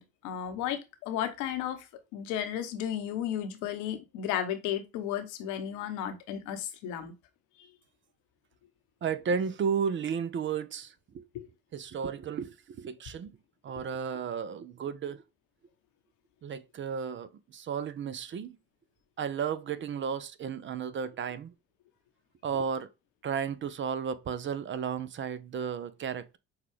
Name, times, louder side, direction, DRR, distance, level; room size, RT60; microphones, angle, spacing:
voice 1, 0.0-1.8 2.1-7.1 11.3-11.5, left 10 dB, 70° left, 0.9 m, -34 dB
voice 2, 9.0-11.3 11.7-13.4 13.6-15.2 16.4-18.6 19.2-21.5 22.4-22.9 23.2-26.4, right 6 dB, 40° right, 0.6 m, -33 dB
5.6 x 2.3 x 3.3 m
hypercardioid pair, 55°, 31 cm